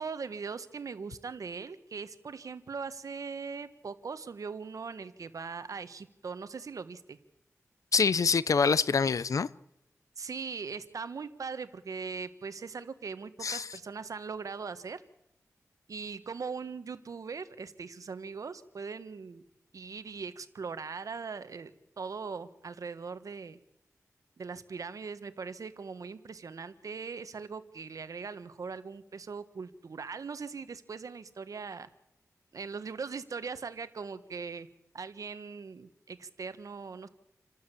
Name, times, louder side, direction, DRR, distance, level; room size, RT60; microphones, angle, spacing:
voice 1, 0.0-7.2 10.2-15.0 15.9-19.4 19.7-21.7 22.0-23.6 24.4-31.9 32.5-34.7 34.9-37.1, right 5 dB, 80° right, 1.5 m, -40 dB
voice 2, 7.9-9.5 13.4-13.7, left 5 dB, 75° left, 0.7 m, -25 dB
28.5 x 13.0 x 8.5 m
wide cardioid pair, 70°, 6 cm